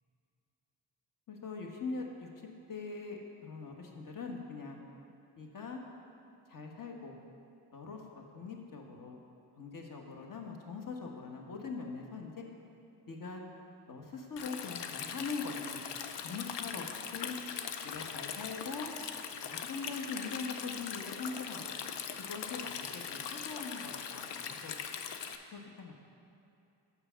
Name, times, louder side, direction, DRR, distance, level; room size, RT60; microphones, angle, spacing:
voice 1, 1.3-2.3 2.7-4.8 5.4-5.8 6.5-7.2 7.7-9.2 9.5-12.4 13.1-13.4 13.9-15.8 16.2-17.4 17.8-18.9 19.5-21.7 22.3-24.8 25.5-25.9, left 4 dB, 50° left, 1 dB, 1.2 m, -42 dB
Stream, 14.4-25.4, left 7 dB, 80° left, 0.6 m, -41 dB
6.8 x 5.7 x 5.7 m, 2.7 s
cardioid pair, 65°, 42 cm